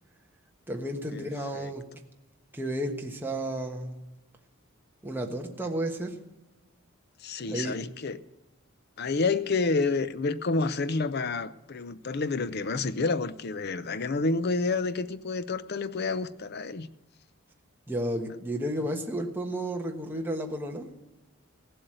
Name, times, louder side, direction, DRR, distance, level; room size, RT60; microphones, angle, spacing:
voice 1, 0.7-1.8 2.5-3.9 5.0-6.2 7.5-7.8 17.9-20.9, right 1 dB, 10° right, 1 dB, 1.3 m, -32 dB
voice 2, 7.2-8.2 9.0-16.9, left 3 dB, 45° left, 15 dB, 0.6 m, -29 dB
16.5 x 7.9 x 7.7 m, 1.0 s
head